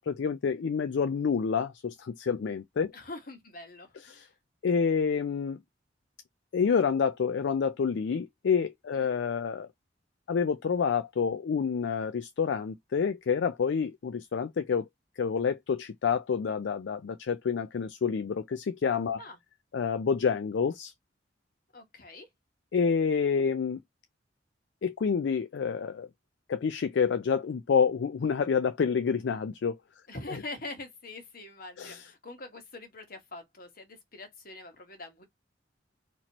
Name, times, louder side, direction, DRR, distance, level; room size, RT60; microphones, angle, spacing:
voice 1, 0.1-2.9 4.1-4.2 4.6-5.6 6.5-9.7 10.3-14.9 15.2-19.2 19.7-20.9 22.7-23.8 24.8-26.1 26.5-29.8 31.8-32.0, left 6 dB, 70° left, 0.4 m, -28 dB
voice 2, 2.9-4.3 8.9-9.1 19.2-19.4 21.7-22.3 30.1-35.2, left 2 dB, 50° left, 1.4 m, -44 dB
4.1 x 2.9 x 2.9 m
head